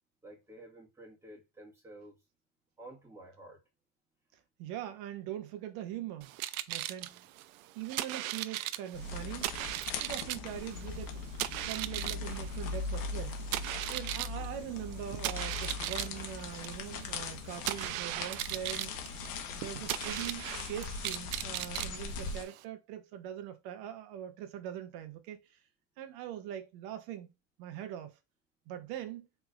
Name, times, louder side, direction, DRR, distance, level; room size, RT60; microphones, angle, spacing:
voice 1, 0.2-2.1 2.8-3.6, right 1 dB, 5° right, 1.6 m, -51 dB
voice 2, 4.3-6.3 6.7-7.3 7.7-9.5 10.0-11.2 11.6-13.4 13.9-19.1 19.5-25.6 26.0-27.3 27.6-28.2 28.7-29.3, right 11 dB, 60° right, 0.9 m, -42 dB
sound 1, 6.2-22.6, right 15 dB, 75° right, 0.5 m, -38 dB
sound 2, 8.9-22.4, left 4 dB, 55° left, 1.1 m, -40 dB
4.2 x 3.4 x 2.4 m
supercardioid pair, 125°, 42 cm